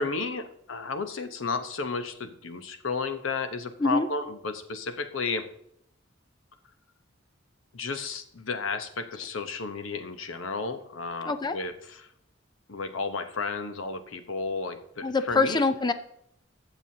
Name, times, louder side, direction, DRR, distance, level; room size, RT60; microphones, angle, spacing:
voice 1, 0.0-5.5 7.7-12.1 12.7-15.6, left 4 dB, 85° left, 9 dB, 1.0 m, -33 dB
voice 2, 11.3-11.6 15.0-15.9, left 3 dB, 20° left, 11 dB, 0.5 m, -24 dB
19.5 x 7.1 x 2.8 m, 0.73 s
head